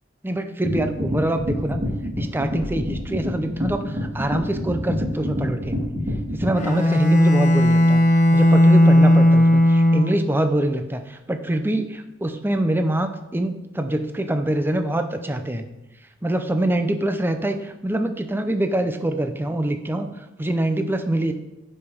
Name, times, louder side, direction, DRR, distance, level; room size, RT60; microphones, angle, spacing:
voice 1, 0.2-1.8 2.2-5.8 6.3-8.0 8.3-15.6 16.2-20.1 20.4-21.3, right 1 dB, 10° right, 7 dB, 0.6 m, -24 dB
sound 1, 0.6-6.5, left 1 dB, 40° right, 2.7 m, -27 dB
Bowed string instrument, 6.5-10.4, left 1 dB, 40° left, 1.1 m, -16 dB
10.5 x 5.6 x 5.1 m, 0.95 s
head